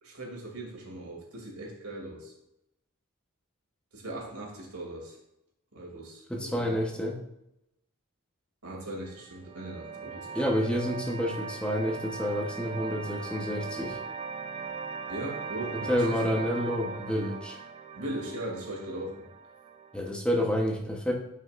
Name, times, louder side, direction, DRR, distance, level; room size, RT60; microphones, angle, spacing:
voice 1, 0.0-2.3 3.9-5.2 5.7-6.8 8.6-10.4 15.1-16.2 17.9-19.3, right 1 dB, 85° right, -2 dB, 2.6 m, -39 dB
voice 2, 6.3-7.2 10.3-14.0 15.9-17.6 19.9-21.1, equal, 5° left, -1 dB, 0.9 m, -29 dB
sound 1, 9.0-20.1, right 5 dB, 25° right, 0.4 m, -39 dB
11.5 x 5.7 x 2.5 m, 0.85 s
head